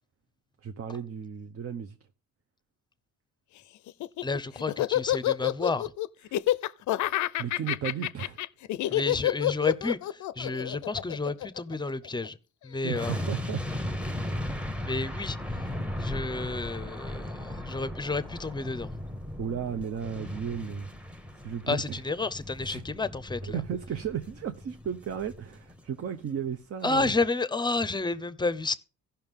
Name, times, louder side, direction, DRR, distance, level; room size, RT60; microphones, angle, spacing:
voice 1, 0.6-2.0 6.3-6.4 7.4-8.4 8.8-9.0 12.8-14.0 19.4-20.9 21.4-22.0 22.7-22.8 23.5-27.1, right 8 dB, 50° right, 0.7 m, -34 dB
Laughter, 3.9-12.3, left 14 dB, 70° left, 0.5 m, -28 dB
voice 2, 4.2-5.9 8.9-12.4 12.6-13.2 14.8-15.7 16.0-18.9 21.7-23.6 26.8-28.8, left 3 dB, 15° left, 0.6 m, -31 dB
sound 1, 12.9-26.1 26.4-26.5, left 1 dB, 5° right, 1.0 m, -37 dB
15.5 x 5.8 x 3.6 m
cardioid pair, 90°, 30 cm